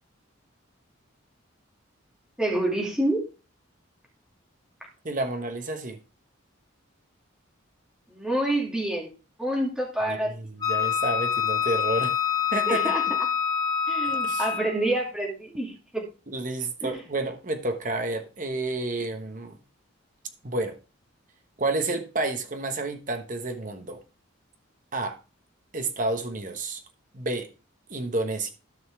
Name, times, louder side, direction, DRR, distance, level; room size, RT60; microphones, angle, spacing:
voice 1, 2.4-3.2 8.1-9.1 9.4-10.3 12.7-13.3 13.9-16.1 16.8-16.9, right 1 dB, 5° right, 2.4 m, -27 dB
voice 2, 5.0-6.0 10.1-12.2 12.5-12.9 14.0-14.5 16.3-19.6 20.4-20.8 21.6-24.0 24.9-25.2 25.7-26.8 27.1-27.5 27.9-28.5, right 2 dB, 40° right, 1.2 m, -30 dB
Wind instrument woodwind instrument, 10.6-14.8, left 7 dB, 20° left, 2.3 m, -26 dB
13.0 x 5.3 x 3.6 m
head